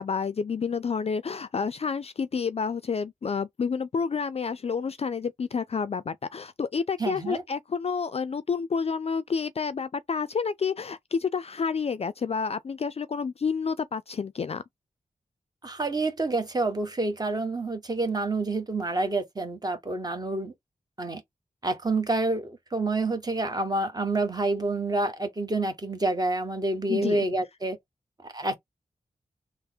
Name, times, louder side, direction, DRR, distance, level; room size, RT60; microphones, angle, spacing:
voice 1, 0.0-14.6 26.9-27.2, left 5 dB, 45° left, 0.4 m, -29 dB
voice 2, 7.0-7.4 15.6-20.5 21.0-21.2 21.6-27.8 28.2-28.5, right 2 dB, 30° right, 1.0 m, -28 dB
3.4 x 2.0 x 4.2 m
cardioid pair, 65°, 14 cm